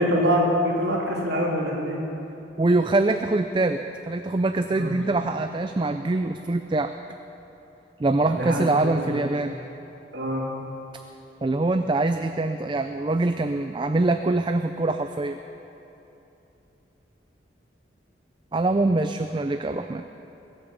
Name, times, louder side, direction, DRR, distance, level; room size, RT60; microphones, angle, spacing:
voice 1, 0.0-2.0 4.7-5.0 8.2-9.2 10.1-10.5, equal, 60° right, -3 dB, 3.3 m, -25 dB
voice 2, 2.6-3.8 4.1-6.9 8.0-9.6 11.4-15.4 18.5-20.0, right 2 dB, 25° right, 8 dB, 0.4 m, -24 dB
23.0 x 8.7 x 7.0 m, 3.0 s
head